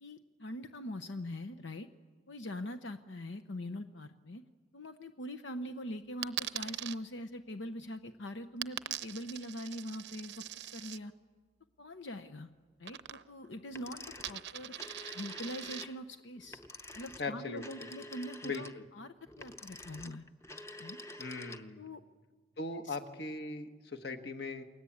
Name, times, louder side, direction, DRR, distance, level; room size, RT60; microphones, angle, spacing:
voice 1, 0.0-1.9 2.3-4.4 4.7-10.4 10.7-11.1 11.8-12.5 12.8-14.7 15.1-16.6 16.9-20.3 20.8-21.0 21.8-22.0 22.8-23.0, left 1 dB, 85° left, 9 dB, 0.9 m, -43 dB
Coin (dropping), 6.2-7.0 8.6-11.0 12.8-13.5 13.8-15.8, right 12 dB, 70° right, 0.7 m, -42 dB
sound 1, 13.7-21.9, left 2 dB, 15° left, 0.8 m, -48 dB
voice 2, 17.2-17.9 18.4-18.8 21.2-21.9 22.6-24.6, left 3 dB, 60° left, 7 dB, 1.5 m, -40 dB
29.5 x 21.5 x 8.7 m, 1.5 s
head